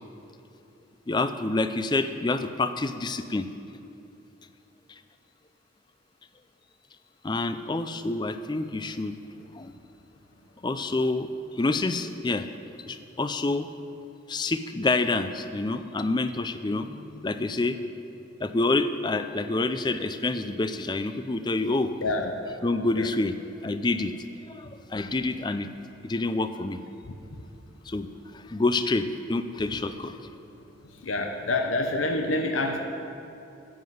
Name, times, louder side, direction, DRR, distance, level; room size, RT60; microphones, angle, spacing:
voice 1, 1.1-3.5 7.2-9.2 9.5-9.7 10.6-11.3 11.6-12.5 12.9-13.7 14.3-17.8 18.4-21.9 22.6-23.4 23.6-24.1 24.5-25.7 26.0-26.8 27.9-28.1 28.3-30.2, left 2 dB, 20° left, 10 dB, 0.4 m, -27 dB
voice 2, 22.0-22.3 22.9-23.1 27.0-27.5 30.8-32.8, left 2 dB, 90° left, 4 dB, 0.8 m, -28 dB
10.0 x 7.6 x 7.8 m, 2.8 s
head